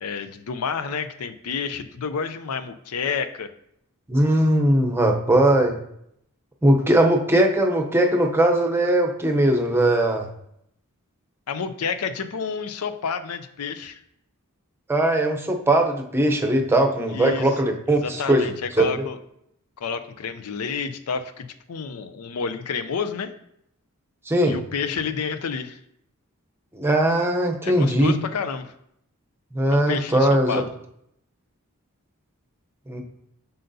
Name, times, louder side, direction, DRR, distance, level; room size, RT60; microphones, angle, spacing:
voice 1, 0.0-3.5 11.5-14.0 17.1-17.5 17.9-19.2 19.8-23.3 24.4-25.8 27.6-28.7 29.7-30.7, left 5 dB, 85° left, 11 dB, 0.5 m, -29 dB
voice 2, 4.1-5.8 6.6-10.3 14.9-18.5 18.8-19.0 24.3-24.6 26.7-28.1 29.5-30.6 32.9-33.0, right 1 dB, 10° right, 3 dB, 0.6 m, -20 dB
7.6 x 5.6 x 2.7 m, 0.75 s
head